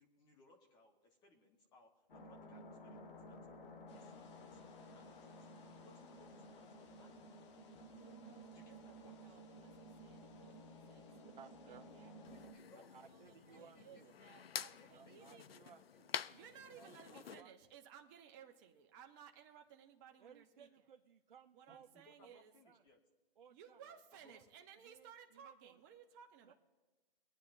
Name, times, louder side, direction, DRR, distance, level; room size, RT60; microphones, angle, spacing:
voice 1, 0.0-3.4 3.8-4.1 4.4-4.6 4.9-7.2 8.5-9.2 12.3-13.0 13.2-14.0 14.7-15.4 15.6-15.7 16.8-17.4 21.7-23.0 23.8-24.4, left 2 dB, 15° left, 2 dB, 1.2 m, -66 dB
sound 1, 2.1-12.5, equal, 65° left, 1.7 m, -55 dB
sound 2, 3.9-12.5, left 6 dB, 30° left, 0.9 m, -71 dB
voice 2, 8.0-8.6 8.9-11.1 11.5-12.4 13.1-15.5 16.3-20.8 21.5-22.5 23.5-26.5, right 8 dB, 20° right, 4 dB, 0.9 m, -60 dB
voice 3, 11.2-11.9 12.9-14.1 14.9-15.8 16.8-16.9 17.3-17.5 20.2-21.9 22.2-22.4 22.6-22.8 23.4-23.8 24.3-24.4 24.8-25.8 26.4-26.5, right 7 dB, 55° right, 4 dB, 0.8 m, -61 dB
sound 3, 12.2-17.4, left 8 dB, 90° left, 0.6 m, -48 dB
23.0 x 9.4 x 2.6 m, 1.3 s
hypercardioid pair, 150°, 29 cm